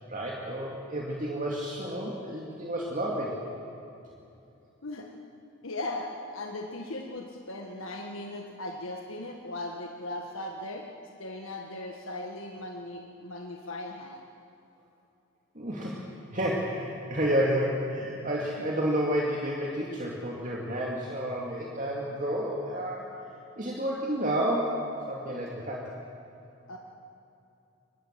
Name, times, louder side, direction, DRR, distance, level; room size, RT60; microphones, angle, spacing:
voice 1, 0.1-3.4 15.5-16.0 16.3-23.2 23.6-24.8 25.1-25.9, equal, 35° right, -3 dB, 2.5 m, -30 dB
voice 2, 5.6-10.8 11.2-14.2 26.7-26.8, left 2 dB, 70° left, 1 dB, 1.7 m, -38 dB
24.5 x 20.0 x 7.7 m, 2.7 s
head